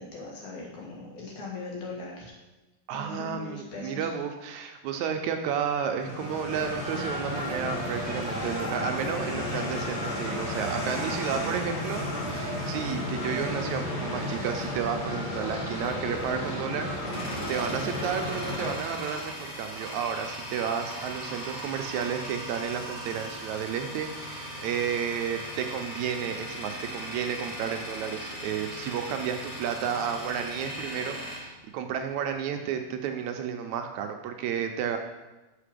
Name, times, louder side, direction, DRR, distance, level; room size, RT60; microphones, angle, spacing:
voice 1, 0.0-2.4 2.9-4.1, left 3 dB, 75° left, -3 dB, 3.0 m, -39 dB
voice 2, 2.9-35.0, right 7 dB, 80° right, 5 dB, 2.0 m, -32 dB
sound 1, 6.0-18.7, left 1 dB, 30° left, 1.5 m, -32 dB
Tools, 17.0-32.4, equal, 50° left, 2.7 m, -39 dB
6.0 x 5.9 x 5.0 m, 1.1 s
omnidirectional pair, 3.4 m